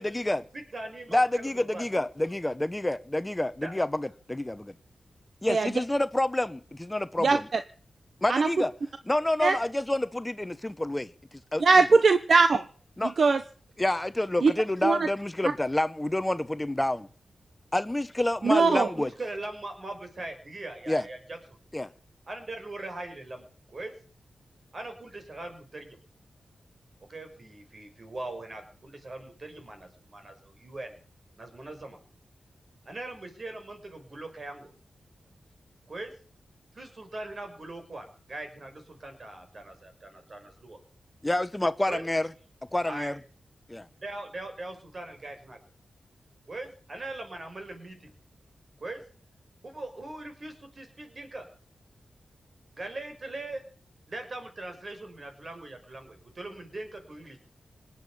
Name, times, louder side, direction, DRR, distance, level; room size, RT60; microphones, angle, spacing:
voice 1, 0.0-0.4 1.1-4.7 5.4-7.5 8.2-8.7 9.1-11.1 11.5-11.6 13.0-13.1 13.8-17.1 17.7-19.1 20.9-21.0 21.7-21.9 41.2-42.3 42.7-43.1 43.7-43.9, left 1 dB, 15° left, 0.9 m, -28 dB
voice 2, 0.5-1.9 3.6-3.7 18.7-21.6 22.3-23.9 24.7-26.0 27.0-31.0 31.4-32.0 32.9-34.7 35.9-36.1 36.7-40.8 41.9-42.0 42.8-43.2 44.0-45.6 46.5-48.1 48.8-49.0 49.6-51.5 52.7-53.6 54.1-57.4, right 2 dB, 50° right, 5.8 m, -40 dB
voice 3, 7.2-7.6 8.3-8.5 9.4-9.6 11.6-12.6 13.2-13.4 14.4-14.5 14.8-15.1 18.4-18.9, right 4 dB, 65° right, 1.1 m, -20 dB
19.5 x 8.6 x 8.6 m
cardioid pair, 55°, 0 cm